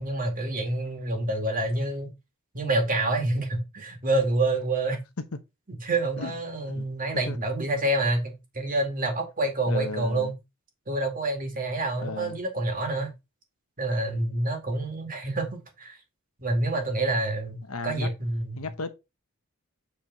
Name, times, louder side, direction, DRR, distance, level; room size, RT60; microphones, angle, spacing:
voice 1, 0.0-2.1 2.5-5.0 5.8-10.3 10.9-13.1 13.8-16.0 16.4-18.7, right 2 dB, 40° right, 2.2 m, -27 dB
voice 2, 9.7-10.3 12.0-12.4 17.7-18.1 18.6-18.9, left 3 dB, 85° left, 1.0 m, -34 dB
7.4 x 4.9 x 4.1 m
head